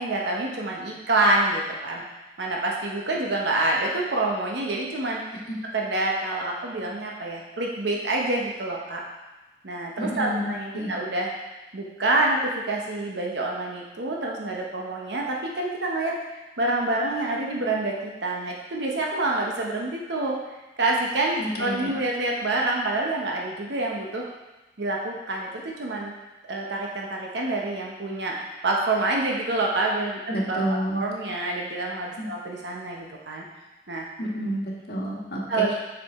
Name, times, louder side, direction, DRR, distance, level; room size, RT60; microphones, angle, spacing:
voice 1, 0.0-2.0 2.4-5.4 5.7-9.0 9.6-11.3 11.7-16.2 16.6-20.4 20.8-24.2 24.8-26.1 26.5-30.2 30.5-30.6 30.9-33.4 33.9-34.1 35.5-35.7, right 2 dB, 80° right, -1 dB, 0.9 m, -27 dB
voice 2, 10.0-10.9 21.4-22.0 30.3-31.0 32.2-32.3 34.2-35.4, equal, 60° left, -3 dB, 1.5 m, -29 dB
7.5 x 4.9 x 3.6 m, 1.1 s
head